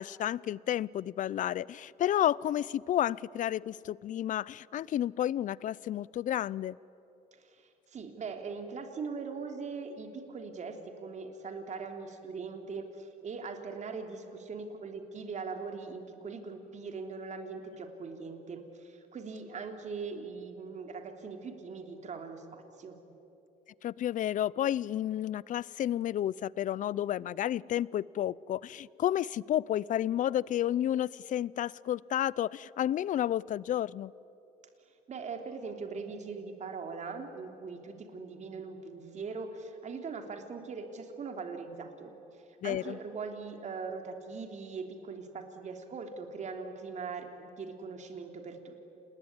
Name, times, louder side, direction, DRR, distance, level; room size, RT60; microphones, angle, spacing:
voice 1, 0.0-6.8 23.8-34.1 42.6-43.0, left 11 dB, 50° left, 23 dB, 0.5 m, -31 dB
voice 2, 7.3-23.0 35.1-42.1 42.6-48.8, right 4 dB, 45° right, 5 dB, 3.3 m, -41 dB
28.5 x 20.5 x 9.6 m, 3.0 s
cardioid pair, 110°, 17 cm